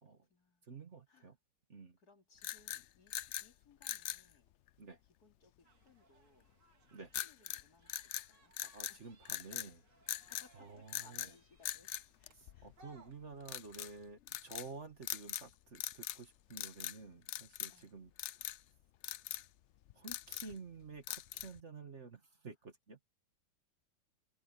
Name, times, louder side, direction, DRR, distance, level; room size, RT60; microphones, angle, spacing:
voice 1, 0.1-0.7 1.1-1.3 2.0-4.5 5.2-6.5 7.2-8.5 8.9-9.1 10.4-11.9 12.2-12.7 17.7-18.0, left 3 dB, 65° left, 3.4 m, -67 dB
voice 2, 0.6-1.4 1.7-2.0 4.8-5.0 6.9-7.1 8.6-9.8 10.2-11.3 12.3-18.4 19.0-19.2 19.9-23.0, right 4 dB, 45° right, 1.8 m, -51 dB
sound 1, 2.4-3.5 3.8-4.3 7.1-7.6 7.9-9.0 9.3-9.7 10.1-10.5 10.9-11.3 11.6-12.8 13.5-13.9 14.3-14.7 15.0-15.5 15.7-16.2 16.5-17.0 17.3-17.8 18.2-18.6 19.0-19.5 19.9-20.6 21.1-21.6, left 12 dB, 80° left, 0.6 m, -42 dB
sound 2, 5.6-13.5, right 2 dB, 85° right, 3.0 m, -68 dB
omnidirectional pair, 1.8 m